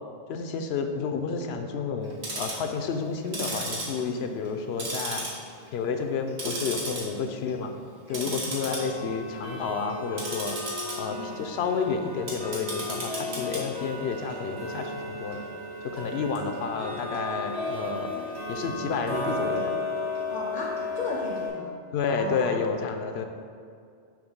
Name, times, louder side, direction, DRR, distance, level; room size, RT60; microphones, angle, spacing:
voice 1, 0.3-5.2 5.7-7.7 8.1-10.6 11.0-15.4 15.9-18.1 18.5-19.8 21.9-23.2, left 5 dB, 80° left, 5 dB, 0.8 m, -30 dB
Tick-tock, 2.0-2.7 3.2-4.5 4.8-5.7 6.0-7.0 7.4-7.6 8.1-21.5, left 1 dB, 80° right, 1.5 m, -34 dB
voice 2, 4.1-4.4 8.1-8.3 11.1-11.4 13.3-13.6 17.9-18.3 20.3-21.8 22.1-22.6, left 2 dB, 55° left, -1 dB, 0.7 m, -37 dB
6.4 x 3.0 x 5.2 m, 2.3 s
omnidirectional pair, 1.1 m